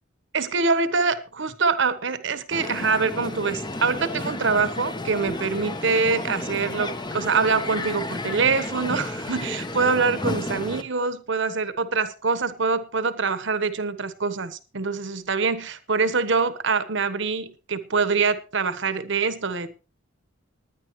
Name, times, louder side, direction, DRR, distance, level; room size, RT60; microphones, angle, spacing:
voice 1, 0.3-19.8, right 4 dB, 65° right, 1.1 m, -24 dB
Crowd, 2.5-10.8, left 2 dB, 20° left, 0.9 m, -32 dB
19.5 x 10.5 x 3.1 m
head